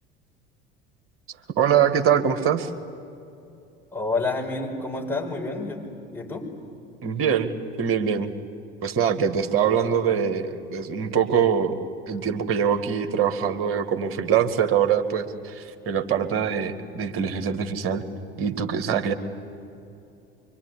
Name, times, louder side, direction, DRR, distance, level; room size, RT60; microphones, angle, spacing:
voice 1, 1.6-2.7 7.0-8.3 8.8-11.8 12.1-18.0 18.4-19.1, right 8 dB, 50° right, 8 dB, 2.1 m, -23 dB
voice 2, 3.9-5.9 6.1-6.5, left 3 dB, 5° left, -1 dB, 6.1 m, -29 dB
24.5 x 23.5 x 9.9 m, 2.7 s
figure-of-eight pair, 70°, 29 cm